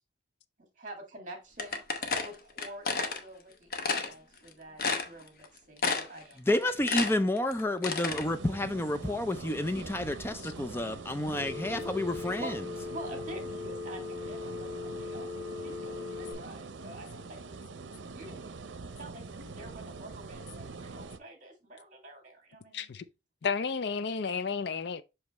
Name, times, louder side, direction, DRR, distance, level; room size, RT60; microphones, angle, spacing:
voice 1, 0.6-6.4 12.4-12.6 12.8-17.4 18.1-18.5 18.8-22.9, right 1 dB, 40° right, 2.0 m, -47 dB
sound 1, 1.6-3.2 3.7-4.1 4.5-4.6 4.8-5.4 5.8-6.2 6.5-8.2, left 4 dB, 50° left, 0.9 m, -31 dB
voice 2, 6.4-12.6, left 1 dB, 10° left, 0.4 m, -30 dB
sound 2, 8.1-21.2, right 4 dB, 90° right, 0.6 m, -44 dB
Telephone, 11.3-16.3, left 4 dB, 10° right, 2.7 m, -39 dB
voice 3, 22.7-23.0 23.4-25.0, left 5 dB, 65° left, 0.5 m, -32 dB
5.9 x 5.4 x 3.0 m
head